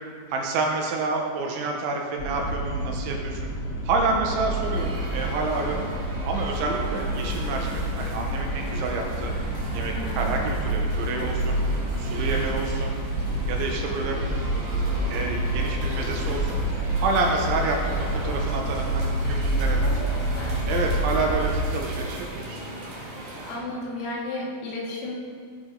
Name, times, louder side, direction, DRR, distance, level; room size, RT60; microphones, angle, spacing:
voice 1, 0.3-3.5 3.8-5.9 6.2-9.4 9.7-11.6 12.0-12.9 13.5-14.2 15.1-16.6 17.0-20.0 20.7-22.6, right 3 dB, 75° right, 1 dB, 3.2 m, -28 dB
sound 1, 2.2-21.5, right 1 dB, 35° left, 1.7 m, -28 dB
sound 2, 4.5-23.6, right 1 dB, 45° right, 2.6 m, -38 dB
voice 2, 10.1-10.4 19.8-20.6 23.5-25.2, left 2 dB, 80° left, -4 dB, 4.9 m, -34 dB
17.5 x 7.0 x 5.2 m, 2.1 s
omnidirectional pair, 6.0 m